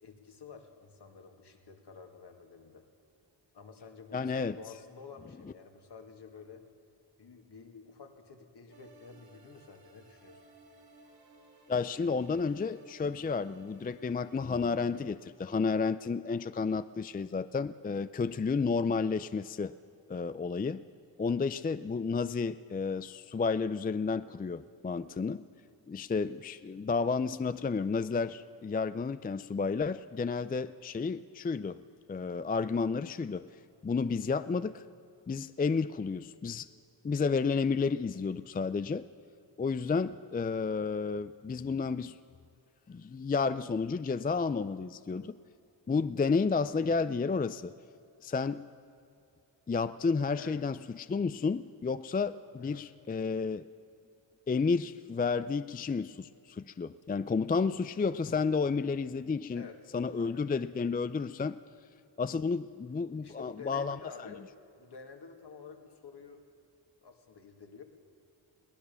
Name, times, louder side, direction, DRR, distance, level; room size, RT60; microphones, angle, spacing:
voice 1, 0.0-2.9 3.5-6.6 7.2-10.4 50.4-50.6 52.4-52.8 59.5-59.8 60.1-60.4 63.2-66.4 67.0-67.8, left 5 dB, 60° left, 4 dB, 2.3 m, -50 dB
voice 2, 4.1-4.6 11.7-19.7 20.1-20.8 21.2-25.4 25.9-31.8 32.1-33.5 33.8-34.8 35.3-36.7 37.0-39.1 39.6-42.2 42.9-45.4 45.9-47.7 48.2-48.7 49.7-53.7 54.5-59.7 59.9-61.6 62.2-64.3, left 4 dB, 20° left, 13 dB, 0.4 m, -31 dB
sound 1, 8.7-15.6, right 2 dB, 55° right, 3.6 m, -59 dB
22.0 x 17.5 x 6.9 m, 2.5 s
wide cardioid pair, 90°, 44 cm